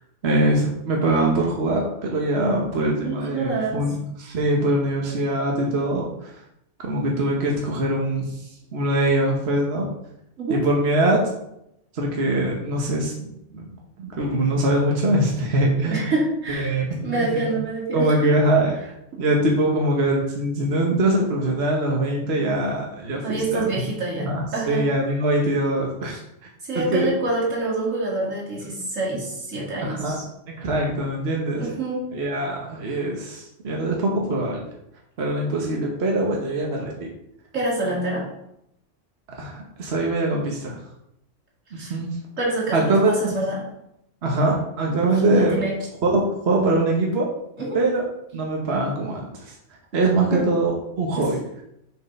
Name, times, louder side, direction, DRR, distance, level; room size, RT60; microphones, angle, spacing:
voice 1, 0.2-6.3 6.8-9.9 10.5-11.2 11.9-13.6 14.0-16.1 16.5-17.6 17.9-18.7 19.2-23.8 24.3-26.2 26.7-27.1 29.8-30.2 30.5-31.7 32.1-34.6 35.2-37.1 39.4-40.8 41.8-42.2 42.7-43.4 44.2-45.6 46.0-47.3 47.7-48.0 48.3-49.5 49.9-51.4, right 1 dB, 55° right, -1 dB, 1.4 m, -23 dB
voice 2, 3.0-3.8 10.4-10.6 15.9-16.8 17.0-18.3 23.2-24.9 26.6-30.2 31.5-32.0 37.5-38.2 41.8-41.9 42.4-43.6 45.3-45.7 47.6-47.8 50.3-50.5 51.2-51.3, right 2 dB, 85° right, -4 dB, 2.8 m, -26 dB
6.6 x 5.2 x 5.2 m, 0.79 s
omnidirectional pair, 1.3 m